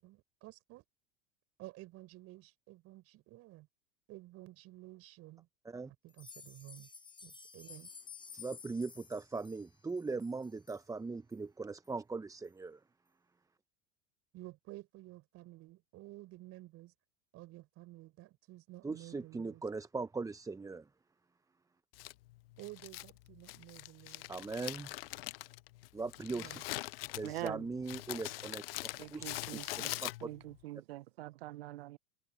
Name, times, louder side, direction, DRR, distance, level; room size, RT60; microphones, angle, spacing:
voice 1, 0.0-0.8 1.6-3.7 4.1-5.5 6.0-6.9 7.2-7.9 14.3-16.9 17.3-19.6 22.6-24.3 26.3-26.7, right 17 dB, 50° right, 6.2 m, -52 dB
sound 1, 6.1-10.8 11.3-11.4 11.8-11.9 12.4-12.5, left 5 dB, 15° left, 4.6 m, -53 dB
voice 2, 8.3-12.8 18.8-20.9 24.3-24.9 25.9-26.6 27.1-28.6 29.1-29.6 30.0-30.3, right 4 dB, 10° right, 0.9 m, -40 dB
Crumpling crinkling, 21.9-30.6, left 19 dB, 75° left, 0.6 m, -43 dB
voice 3, 27.2-27.7 29.0-32.0, right 16 dB, 75° right, 0.7 m, -44 dB
open air
hypercardioid pair, 90°, 30 cm